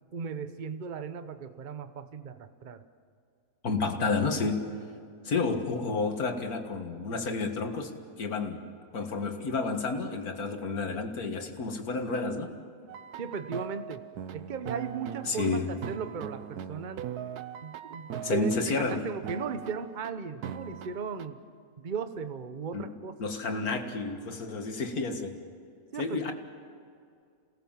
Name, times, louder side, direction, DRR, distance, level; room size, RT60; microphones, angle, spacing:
voice 1, 0.1-2.8 13.2-14.0 14.3-17.1 17.6-21.4 21.8-23.3 25.9-26.3, right 6 dB, 35° right, 10 dB, 0.9 m, -37 dB
voice 2, 3.6-4.7 5.2-7.9 8.2-8.7 8.9-12.5 15.3-15.7 18.2-19.1 22.7-22.9 23.2-25.4 26.0-26.3, left 4 dB, 75° left, 5 dB, 2.2 m, -30 dB
sound 1, 12.9-18.9 19.2-20.1 20.4-21.2, right 9 dB, 85° right, 1.4 m, -40 dB
28.0 x 18.5 x 7.4 m, 2.4 s
omnidirectional pair, 1.6 m